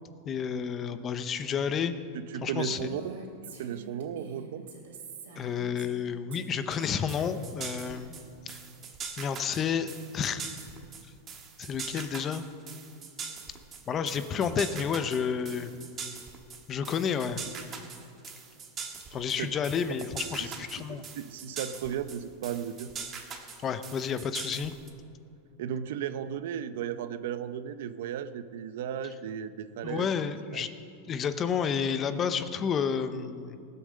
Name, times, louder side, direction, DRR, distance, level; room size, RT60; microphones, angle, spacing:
voice 1, 0.2-1.9 2.4-2.9 5.4-8.1 8.5-8.6 9.2-9.9 10.1-10.4 11.6-12.5 13.9-15.7 16.7-17.4 19.1-21.0 23.6-24.7 29.8-30.7 31.1-33.6, left 7 dB, 20° left, 11 dB, 0.6 m, -30 dB
voice 2, 2.3-3.2 3.6-4.6 20.4-20.5 21.1-22.9 25.6-30.1 30.5-30.6, right 8 dB, 65° right, 12 dB, 0.7 m, -35 dB
Female speech woman speaking, 2.6-6.0 6.3-8.1, right 4 dB, 85° right, 3.0 m, -46 dB
sound 1, 6.8-24.9, right 6 dB, 25° right, 1.4 m, -42 dB
19.0 x 8.5 x 6.6 m, 2.5 s
supercardioid pair, 160°, 0 cm